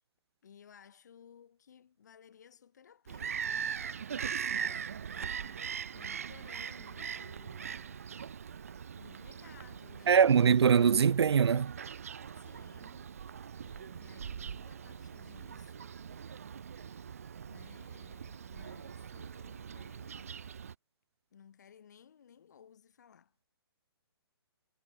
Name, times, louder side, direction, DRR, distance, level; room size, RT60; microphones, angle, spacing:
voice 1, 0.4-4.2 4.4-8.1 8.9-10.3 12.3-13.2 13.6-16.0 17.5-20.4 21.3-23.5, left 8 dB, 45° left, 5.6 m, -59 dB
Bird vocalization bird call bird song, 3.1-20.7, right 7 dB, 35° right, 0.4 m, -41 dB
voice 2, 10.1-11.7, right 7 dB, 80° right, 0.7 m, -23 dB
hypercardioid pair, 180°, 14 cm